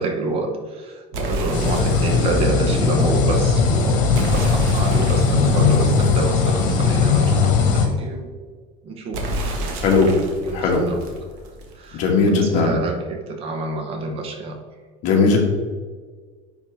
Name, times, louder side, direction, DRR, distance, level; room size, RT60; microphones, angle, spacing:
voice 1, 0.0-8.3 8.8-9.7 10.4-11.4 11.7-14.6, right 3 dB, 40° right, 4 dB, 0.9 m, -28 dB
sound 1, 1.1-2.4 4.1-6.9 9.1-11.9, right 1 dB, 70° right, 1.3 m, -30 dB
sound 2, 1.5-7.9, left 5 dB, 75° left, 1.5 m, -18 dB
voice 2, 10.5-10.9 11.9-12.8 15.0-15.4, left 4 dB, 50° left, 0 dB, 1.5 m, -17 dB
9.9 x 3.8 x 3.4 m, 1.5 s
cardioid pair, 165°, 16 cm